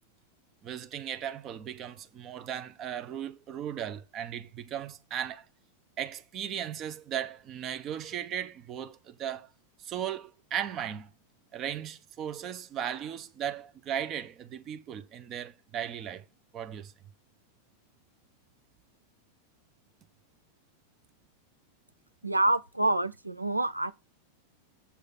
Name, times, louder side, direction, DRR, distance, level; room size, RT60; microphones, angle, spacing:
voice 1, 0.6-5.4 6.0-9.5 9.8-11.1 11.5-16.3 16.5-16.9, right 9 dB, 30° right, 0.7 m, -36 dB
voice 2, 22.2-23.9, right 2 dB, 85° right, 0.4 m, -27 dB
7.1 x 3.3 x 5.4 m
figure-of-eight pair, 90°, 0 cm